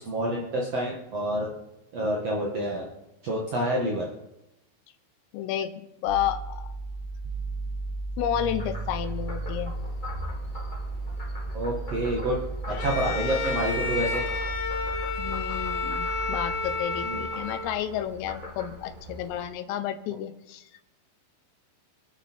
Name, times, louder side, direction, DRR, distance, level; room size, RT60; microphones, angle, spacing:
voice 1, 0.0-1.5 1.9-2.8 3.2-4.1 11.5-12.4 12.6-14.2 17.0-17.2, right 1 dB, 65° right, -2 dB, 1.5 m, -28 dB
voice 2, 5.3-6.7 8.2-9.7 15.2-20.8, left 10 dB, 90° left, 9 dB, 3.7 m, -31 dB
sound 1, 6.1-16.5, right 2 dB, 35° right, 5.2 m, -35 dB
Frog, 8.3-19.5, left 1 dB, 10° left, 2.7 m, -41 dB
Bowed string instrument, 12.7-18.0, left 4 dB, 70° left, 4.3 m, -31 dB
27.0 x 11.0 x 4.6 m, 0.94 s
omnidirectional pair, 5.8 m